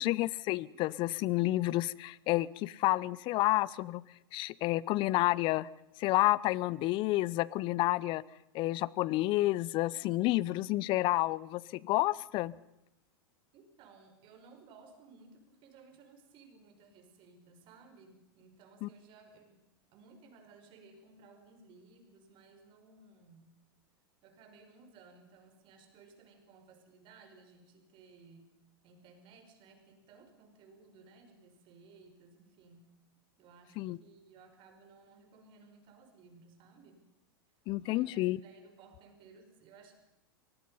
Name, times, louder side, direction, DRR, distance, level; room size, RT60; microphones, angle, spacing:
voice 1, 0.0-4.0 4.3-5.7 6.0-8.2 8.5-12.5 18.8-18.9 33.8-34.0 37.7-38.4, left 18 dB, 45° left, 22 dB, 0.7 m, -30 dB
voice 2, 13.5-19.6 19.9-23.6 24.2-28.6 28.8-32.9 33.4-37.1 37.8-39.9, right 4 dB, 45° right, 5 dB, 5.3 m, -58 dB
25.0 x 19.0 x 5.6 m, 0.87 s
hypercardioid pair, 105°, 12 cm